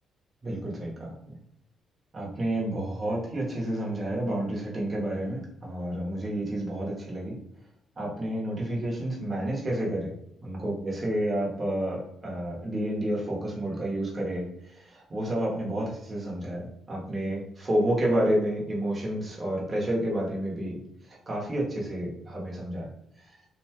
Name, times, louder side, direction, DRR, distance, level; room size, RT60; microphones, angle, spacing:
voice 1, 0.4-1.4 2.1-7.4 8.0-10.1 10.4-22.9 23.2-23.4, right 1 dB, 30° right, -4 dB, 1.1 m, -30 dB
2.8 x 2.7 x 2.2 m, 0.77 s
cardioid pair, 90°, 0 cm